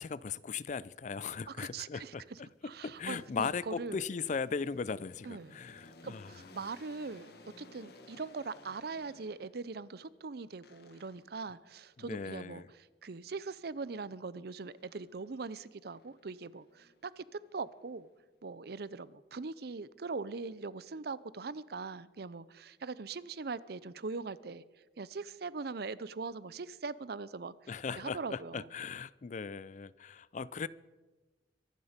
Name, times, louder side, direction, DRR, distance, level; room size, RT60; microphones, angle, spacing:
voice 1, 0.0-6.3 12.0-12.7 27.7-30.7, left 5 dB, 45° left, 0.4 m, -38 dB
voice 2, 1.5-4.0 5.2-5.6 6.0-7.3 7.6-12.6 13.0-18.1 18.4-24.6 25.0-27.5 28.0-28.7, right 4 dB, 60° right, 0.6 m, -41 dB
sound 1, 2.1-9.7 10.6-11.4 14.6-15.4 15.9-18.3, left 2 dB, 60° left, 1.6 m, -58 dB
24.0 x 11.5 x 5.1 m
head